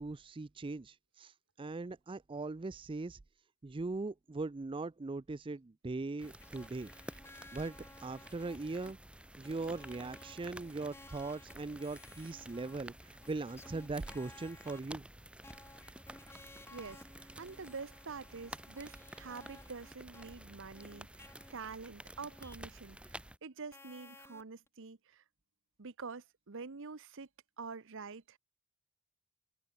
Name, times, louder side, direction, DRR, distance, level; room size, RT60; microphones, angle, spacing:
voice 1, 0.0-3.2 3.6-6.9 7.5-9.0 9.4-15.1, right 3 dB, 25° right, 0.4 m, -40 dB
sound 1, 6.2-8.9 9.4-14.9 15.4-21.5 22.2-22.6 23.7-24.7, left 2 dB, 10° left, 1.2 m, -57 dB
sound 2, 6.2-23.4, right 1 dB, 5° right, 1.5 m, -52 dB
voice 2, 16.7-25.2 25.8-27.3 27.6-28.4, right 4 dB, 60° right, 0.9 m, -47 dB
open air
head